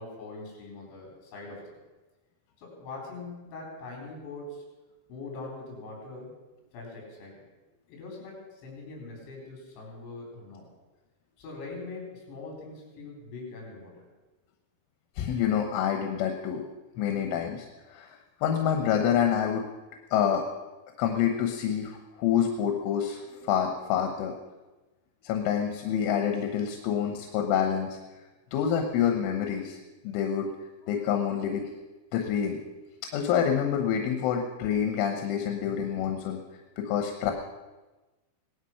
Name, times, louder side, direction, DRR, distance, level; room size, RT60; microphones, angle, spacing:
voice 1, 0.0-1.7 2.6-4.7 5.1-6.3 6.7-7.4 7.9-10.6 11.4-14.0 16.9-17.2 35.5-35.8, left 3 dB, 70° left, -1 dB, 6.0 m, -42 dB
voice 2, 15.2-16.6 17.0-19.7 20.1-20.4 21.0-24.3 25.2-28.0 28.5-29.8 30.1-30.5 30.9-31.7 32.1-32.6 33.1-36.4 36.8-37.3, left 8 dB, 85° left, 5 dB, 3.6 m, -27 dB
17.5 x 13.0 x 5.7 m, 1.2 s
omnidirectional pair, 5.5 m